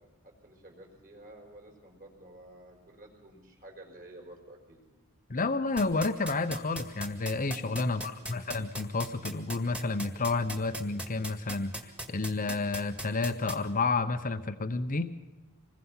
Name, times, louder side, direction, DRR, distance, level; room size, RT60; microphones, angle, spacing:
voice 1, 0.0-4.8 7.8-8.5, right 1 dB, 40° right, 1 dB, 5.0 m, -52 dB
voice 2, 5.3-15.1, left 3 dB, 35° left, 9 dB, 0.8 m, -30 dB
sound 1, 5.8-13.5, right 1 dB, 5° right, 2.0 m, -37 dB
26.0 x 21.0 x 5.7 m, 1.1 s
head